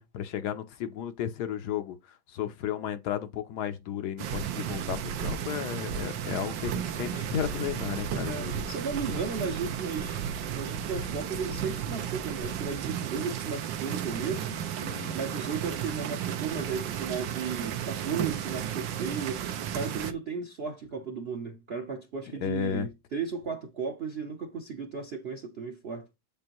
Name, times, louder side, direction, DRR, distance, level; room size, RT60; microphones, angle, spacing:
voice 1, 0.1-2.0 2.3-8.7 9.1-9.2 14.8-15.2 22.4-22.9, left 9 dB, 70° left, 1.1 m, -34 dB
sound 1, 4.2-20.1, right 9 dB, 85° right, 1.5 m, -34 dB
voice 2, 8.2-10.2 10.5-14.6 15.1-19.5 19.7-26.1, right 5 dB, 55° right, 0.6 m, -35 dB
7.6 x 5.2 x 2.9 m
omnidirectional pair, 2.0 m